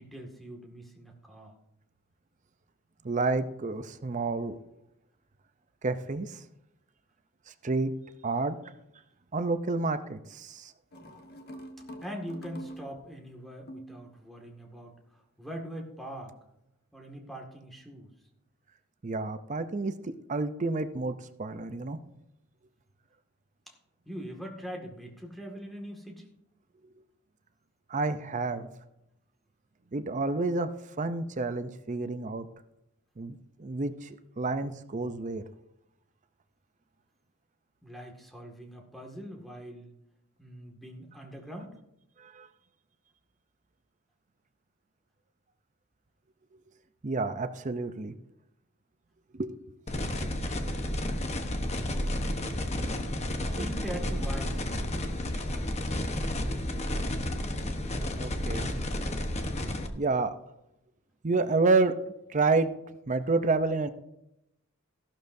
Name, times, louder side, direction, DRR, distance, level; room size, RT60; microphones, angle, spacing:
voice 1, 0.0-1.5 12.0-16.3 16.9-18.1 23.7-23.8 24.1-26.3 37.8-39.9 40.4-41.8 53.4-54.7, equal, ahead, 0 dB, 1.9 m, -42 dB
voice 2, 3.0-4.6 5.8-6.4 7.6-7.9 8.2-8.6 9.3-10.7 19.0-22.0 27.9-28.7 29.9-30.7 31.0-32.5 33.2-35.5 42.2-42.5 47.0-48.2 49.3-49.6 50.2-50.5 53.6-53.7 58.2-58.7 60.0-60.4 61.2-62.0 62.3-62.7 63.1-63.9, right 3 dB, 35° right, 10 dB, 0.6 m, -29 dB
sound 1, 10.9-13.2 13.7-14.0, right 1 dB, 45° left, 1.4 m, -45 dB
sound 2, 49.9-59.9, left 1 dB, 30° left, 1.0 m, -31 dB
15.0 x 12.0 x 2.7 m, 0.85 s
head